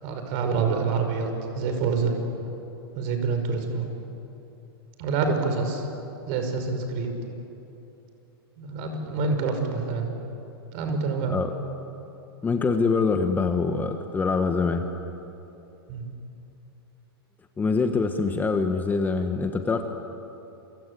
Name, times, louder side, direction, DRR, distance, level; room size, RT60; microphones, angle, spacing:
voice 1, 0.0-2.1 2.9-3.9 5.0-5.9 6.3-7.1 8.6-10.1 10.7-11.3 15.9-16.1, right 4 dB, 45° right, 5 dB, 5.8 m, -27 dB
voice 2, 12.4-14.9 17.6-19.8, left 4 dB, 15° left, 6 dB, 1.3 m, -24 dB
28.5 x 24.5 x 8.5 m, 2.9 s
hypercardioid pair, 130°, 13 cm